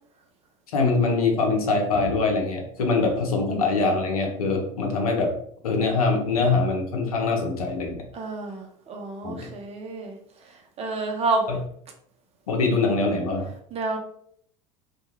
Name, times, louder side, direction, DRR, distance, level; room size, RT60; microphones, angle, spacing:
voice 1, 0.7-5.3 5.6-8.0 9.2-9.5 11.5-11.6 12.5-13.5, left 3 dB, 80° left, 2 dB, 0.7 m, -23 dB
voice 2, 8.1-10.2 10.8-11.5 12.5-12.6 13.7-14.0, right 3 dB, 35° right, 2 dB, 0.7 m, -29 dB
2.3 x 2.2 x 2.9 m, 0.66 s
hypercardioid pair, 80°, 18 cm